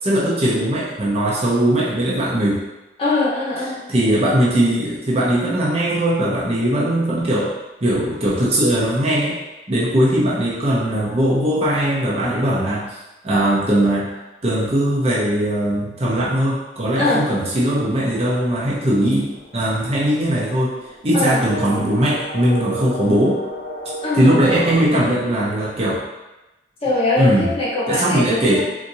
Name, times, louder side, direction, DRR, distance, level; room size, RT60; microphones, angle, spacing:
voice 1, 0.0-2.6 3.9-7.5 7.8-9.4 9.7-12.9 13.2-14.1 14.4-20.7 21.0-23.4 24.1-26.0 27.2-27.5 27.9-28.6, right 1 dB, 35° right, -7 dB, 0.7 m, -19 dB
voice 2, 3.0-3.8 17.0-17.2 21.1-21.4 24.0-24.3 26.8-28.6, left 2 dB, 30° left, -8 dB, 1.0 m, -21 dB
sound 1, 19.1-24.8, equal, 60° left, 1.0 m, -33 dB
4.1 x 2.4 x 2.7 m, 1.0 s
head